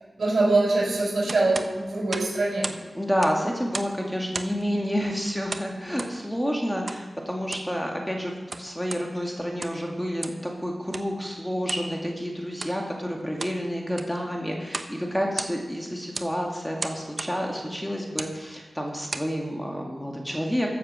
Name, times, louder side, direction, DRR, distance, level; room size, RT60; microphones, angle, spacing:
voice 1, 0.2-2.7, right 2 dB, 75° right, -3 dB, 5.2 m, -23 dB
sound 1, 1.3-2.8 3.1-4.0 4.3-4.7 5.5-6.2 6.9-7.0 7.4-7.7 8.3-9.1 9.5-9.9 10.2-10.5 10.9-11.1 11.7-11.9 12.5-12.8 13.2-13.6 13.9-14.2 14.7-15.0 15.2-15.8 16.1-16.3 16.8-17.4 18.1-18.4 18.9-19.3, right 3 dB, 55° right, 0.8 m, -35 dB
voice 2, 2.9-8.3 8.6-20.7, equal, 5° left, 0 dB, 2.1 m, -29 dB
14.5 x 7.5 x 6.1 m, 1.2 s
wide cardioid pair, 65°, 0 cm